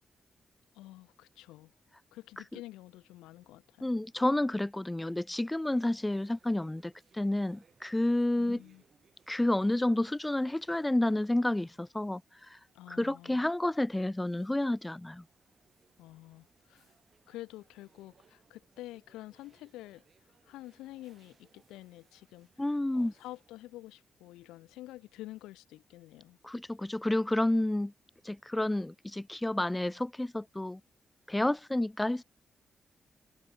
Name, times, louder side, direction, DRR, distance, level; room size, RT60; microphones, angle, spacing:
voice 1, 0.7-1.7 2.1-3.9 8.4-8.8 12.7-13.5 16.0-16.9 17.3-20.0 20.4-26.4, left 17 dB, 85° left, 1.7 m, -48 dB
voice 2, 3.8-8.6 9.3-12.6 12.9-15.2 22.6-23.1 26.4-27.9 28.2-30.8 31.3-32.2, left 1 dB, 15° left, 0.6 m, -30 dB
sound 1, 5.3-23.7, right 6 dB, 55° right, 7.6 m, -69 dB
hypercardioid pair, 40°, 0 cm